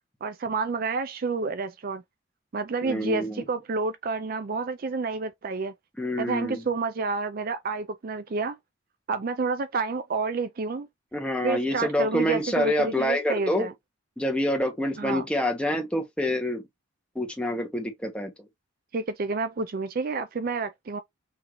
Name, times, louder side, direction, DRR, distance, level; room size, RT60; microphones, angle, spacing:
voice 1, 0.2-2.0 2.5-5.7 6.2-8.6 9.1-10.9 11.4-13.7 15.0-15.2 18.9-21.0, right 4 dB, 45° right, 0.4 m, -29 dB
voice 2, 2.8-3.4 6.0-6.6 11.1-13.7 14.2-16.6 17.1-18.3, left 1 dB, 5° left, 1.1 m, -27 dB
5.8 x 2.8 x 3.0 m
head